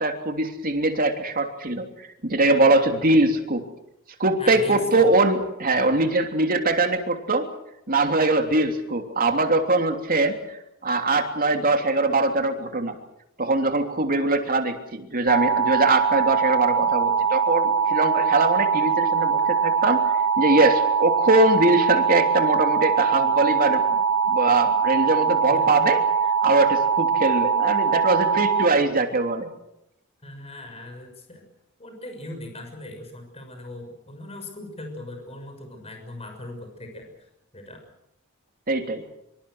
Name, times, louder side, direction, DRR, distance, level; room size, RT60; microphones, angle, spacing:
voice 1, 0.0-3.6 4.2-7.5 7.9-13.0 13.4-20.1 20.4-24.0 24.3-26.0 26.4-29.5 38.7-39.0, right 2 dB, 45° right, 5 dB, 3.1 m, -22 dB
voice 2, 4.4-5.1 5.7-6.0 25.5-25.7 30.2-31.4 31.8-37.1 37.5-37.8, left 1 dB, 30° left, 4 dB, 6.3 m, -39 dB
sound 1, 15.3-28.7, right 6 dB, 85° right, 1.5 m, -22 dB
26.0 x 24.0 x 6.4 m, 0.83 s
head